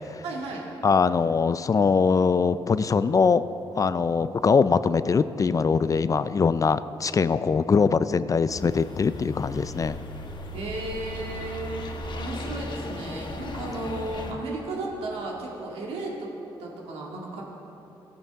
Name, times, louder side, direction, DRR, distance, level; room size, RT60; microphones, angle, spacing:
voice 1, 0.2-0.6 10.5-11.8 12.1-16.3 16.6-17.4, right 2 dB, 80° right, -2 dB, 2.0 m, -34 dB
voice 2, 0.8-3.5 3.8-10.0, left 5 dB, 35° left, 14 dB, 0.4 m, -22 dB
sound 1, 8.5-14.3, left 1 dB, 50° left, 1.1 m, -36 dB
14.5 x 8.9 x 3.6 m, 2.9 s
supercardioid pair, 65°, 10 cm